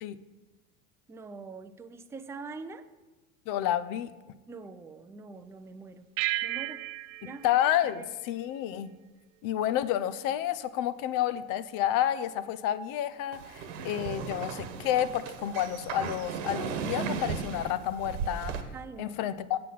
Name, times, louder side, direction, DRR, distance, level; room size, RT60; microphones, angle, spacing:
voice 1, 1.1-2.9 4.5-6.1 6.4-6.8 7.2-7.4 8.0-8.1 18.7-19.4, right 4 dB, 5° right, 8 dB, 0.4 m, -44 dB
voice 2, 3.5-4.1 7.4-8.9 9.4-18.5 19.0-19.6, left 11 dB, 55° left, 14 dB, 0.7 m, -30 dB
sound 1, 6.2-8.9, right 16 dB, 55° right, 0.5 m, -35 dB
sound 2, 13.3-18.6, right 6 dB, 70° right, 1.2 m, -36 dB
8.2 x 7.6 x 5.8 m, 1.2 s
hypercardioid pair, 95°, 40 cm